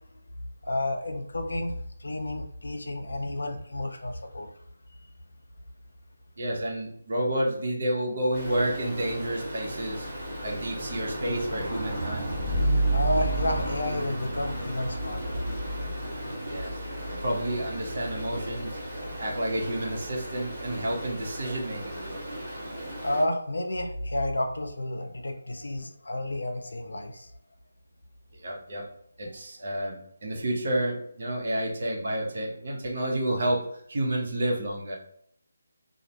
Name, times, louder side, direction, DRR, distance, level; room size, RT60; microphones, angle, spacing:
voice 1, 0.6-1.7 2.0-4.5 12.9-15.4 19.0-19.1 23.0-27.3, left 1 dB, 75° left, 5 dB, 0.4 m, -31 dB
voice 2, 6.4-10.1 10.4-12.2 16.5-16.8 17.1-18.8 19.2-22.2 28.4-28.8 29.2-33.6 33.9-35.0, right 1 dB, 55° right, -1 dB, 0.7 m, -30 dB
Stream, 8.3-23.2, right 1 dB, 25° right, 1.3 m, -33 dB
2.4 x 2.0 x 2.8 m, 0.68 s
figure-of-eight pair, 155°, 0 cm